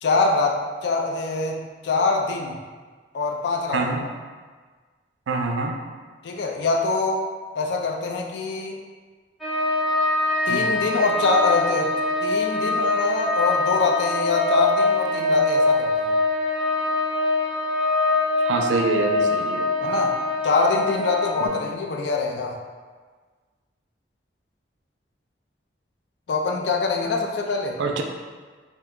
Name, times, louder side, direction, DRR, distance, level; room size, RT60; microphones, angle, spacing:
voice 1, 0.0-2.6 3.1-4.1 6.2-7.3 7.6-8.8 10.5-11.9 12.2-16.1 19.8-20.2 20.4-22.6 26.3-27.8, left 3 dB, 70° left, 1 dB, 0.4 m, -24 dB
voice 2, 3.7-4.1 5.3-5.8 10.5-10.7 18.4-19.7 21.4-21.5 27.8-28.0, right 4 dB, 85° right, 3 dB, 0.4 m, -25 dB
sound 1, 9.4-21.5, left 2 dB, ahead, 0.4 m, -23 dB
2.7 x 2.2 x 3.6 m, 1.5 s
head